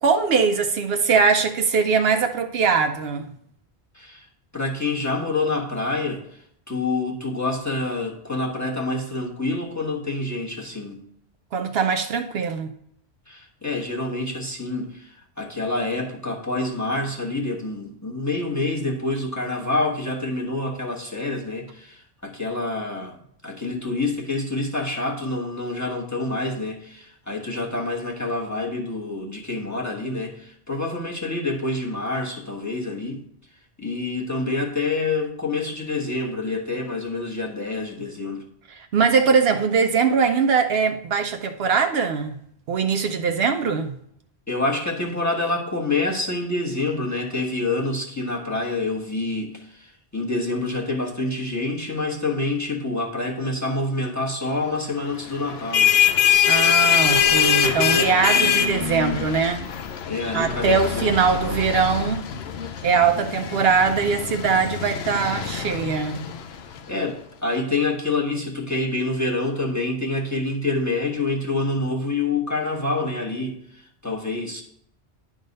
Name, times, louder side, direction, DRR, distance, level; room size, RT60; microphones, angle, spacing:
voice 1, 0.0-3.3 11.5-12.7 38.7-42.4 42.7-44.0 56.5-59.7 60.3-62.3 62.8-66.2, right 5 dB, 70° right, 0.8 m, -21 dB
voice 2, 3.9-4.3 4.5-11.0 13.3-33.2 33.8-38.4 44.5-56.0 60.1-61.6 66.9-74.6, left 2 dB, 15° left, 1.2 m, -27 dB
sound 1, 55.5-66.8, left 8 dB, 70° left, 0.8 m, -23 dB
10.5 x 3.7 x 5.2 m
omnidirectional pair, 1.1 m